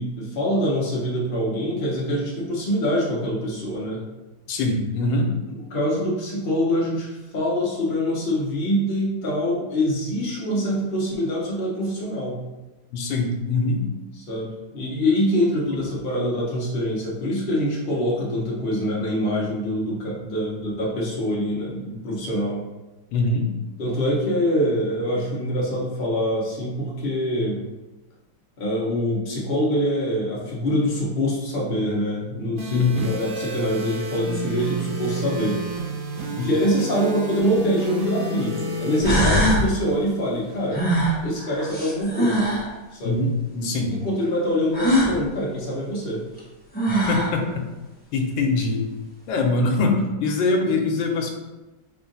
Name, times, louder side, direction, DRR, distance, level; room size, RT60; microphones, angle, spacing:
voice 1, 0.0-4.0 5.5-12.4 14.2-22.6 23.8-27.6 28.6-35.6 36.2-40.8 41.2-42.5 42.9-43.2 43.9-46.2, equal, 40° left, -4 dB, 0.8 m, -24 dB
voice 2, 4.5-5.3 12.9-13.8 23.1-23.5 32.7-33.1 43.0-43.9 46.9-47.5 48.1-48.8 49.3-51.3, left 3 dB, 80° left, 3 dB, 1.3 m, -23 dB
sound 1, 32.6-40.6, right 1 dB, 65° right, 1.1 m, -31 dB
sound 2, 38.6-38.7 39.0-39.7 40.7-42.7 44.7-45.1 46.4-46.5 46.7-47.4, equal, 10° left, 0.5 m, -21 dB
3.5 x 2.5 x 4.0 m, 1.1 s
omnidirectional pair, 2.0 m